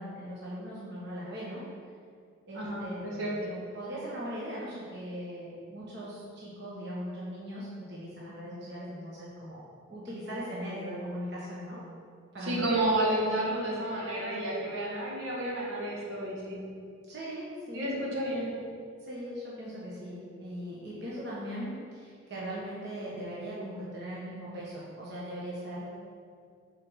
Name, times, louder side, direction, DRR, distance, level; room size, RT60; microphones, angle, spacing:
voice 1, 0.0-1.6 2.5-11.8 12.3-12.8 17.1-17.9 19.0-26.0, equal, 55° right, -7 dB, 1.4 m, -39 dB
voice 2, 2.5-3.3 12.4-16.6 17.7-18.5, right 1 dB, 80° right, -5 dB, 1.9 m, -31 dB
5.7 x 5.0 x 6.4 m, 2.3 s
head